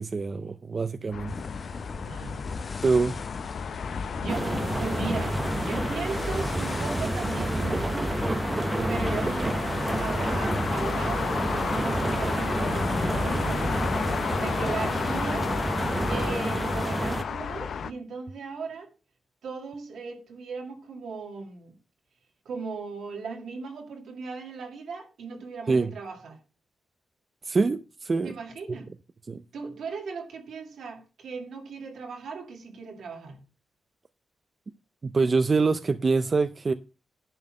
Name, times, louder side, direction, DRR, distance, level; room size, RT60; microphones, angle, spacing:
voice 1, 0.0-1.4 2.8-3.1 25.7-25.9 27.4-28.3 29.3-29.4 35.0-36.7, right 4 dB, 40° right, 0.5 m, -25 dB
sound 1, 1.1-17.9, left 7 dB, 75° left, 0.5 m, -33 dB
sound 2, 1.3-14.7, left 3 dB, 40° left, 0.9 m, -38 dB
voice 2, 2.0-2.5 4.2-8.2 8.9-13.8 14.1-15.5 16.1-18.9 19.4-21.7 22.5-26.4 28.2-28.9 29.5-33.4, right 4 dB, 85° right, 2.3 m, -37 dB
sound 3, 4.3-17.2, right 2 dB, 25° right, 0.9 m, -29 dB
11.0 x 4.0 x 6.3 m
cardioid pair, 75°, 0 cm